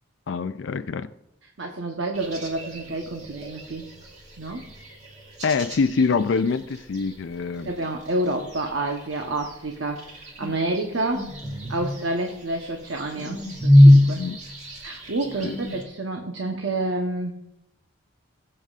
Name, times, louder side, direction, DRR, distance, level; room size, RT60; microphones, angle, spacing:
voice 1, 0.3-1.1 5.4-7.7 14.2-14.4 15.4-15.6, left 4 dB, 65° left, 0.4 m, -25 dB
voice 2, 1.6-3.9 4.4-4.6 7.6-11.3 11.7-14.2 14.8-17.3, right 2 dB, 75° right, 1.0 m, -29 dB
sound 1, 2.1-15.8, left 1 dB, 35° right, 2.1 m, -24 dB
20.5 x 7.7 x 2.5 m
head